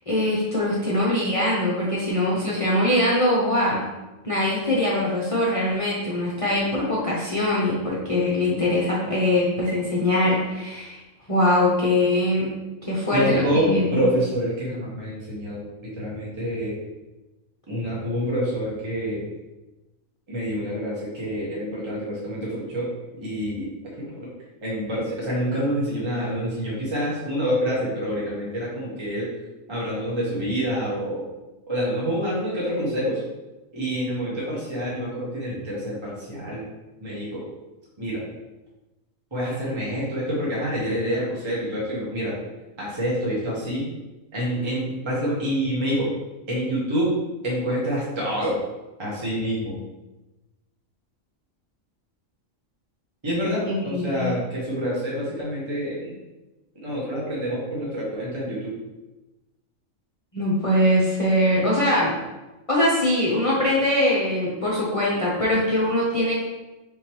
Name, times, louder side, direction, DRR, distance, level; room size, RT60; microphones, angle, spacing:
voice 1, 0.1-3.8 4.2-11.0 11.3-12.5 12.8-14.0 53.6-54.4 60.3-62.2 62.7-66.3, left 1 dB, 30° left, -6 dB, 0.7 m, -22 dB
voice 2, 13.1-16.8 17.7-19.3 20.3-22.9 23.2-23.9 24.2-24.3 24.6-29.3 29.7-31.2 31.7-33.2 33.7-36.6 37.0-37.4 38.0-38.2 39.3-42.4 42.8-43.8 44.3-46.1 46.5-47.2 47.4-48.6 49.0-49.7 53.2-56.1 56.7-58.7, equal, 25° right, -7 dB, 1.1 m, -27 dB
5.0 x 3.5 x 3.0 m, 1.1 s
omnidirectional pair, 1.4 m